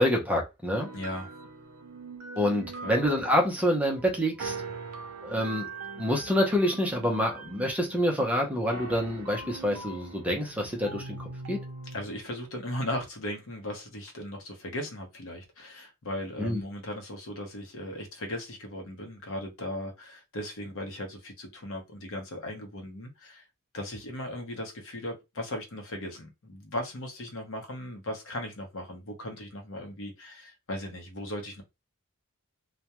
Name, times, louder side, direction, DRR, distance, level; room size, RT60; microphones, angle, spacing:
voice 1, 0.0-0.9 2.4-4.5 5.2-5.7 6.0-11.6 16.4-16.6, equal, 5° right, 0.6 m, -27 dB
sound 1, 0.7-12.2, right 3 dB, 75° right, 0.5 m, -42 dB
voice 2, 0.9-1.3 2.8-2.9 11.9-23.4 23.7-31.6, left 1 dB, 65° left, 0.8 m, -37 dB
2.2 x 2.2 x 2.8 m
head